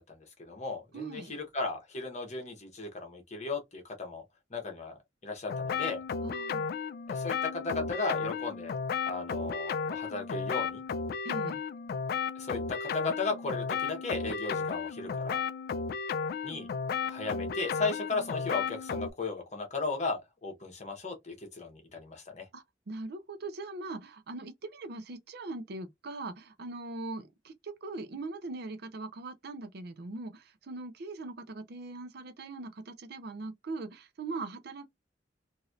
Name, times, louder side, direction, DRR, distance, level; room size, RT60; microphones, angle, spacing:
voice 1, 0.0-4.2 4.5-5.0 5.2-6.0 7.1-8.8 9.1-10.8 12.4-15.4 16.4-16.7 17.0-22.5, left 3 dB, 40° left, 1.1 m, -36 dB
voice 2, 0.9-1.4 6.2-6.7 11.2-11.6 22.5-34.9, right 3 dB, 60° right, 0.5 m, -41 dB
sound 1, 5.5-19.1, left 5 dB, 55° left, 0.3 m, -34 dB
3.0 x 2.7 x 2.4 m
head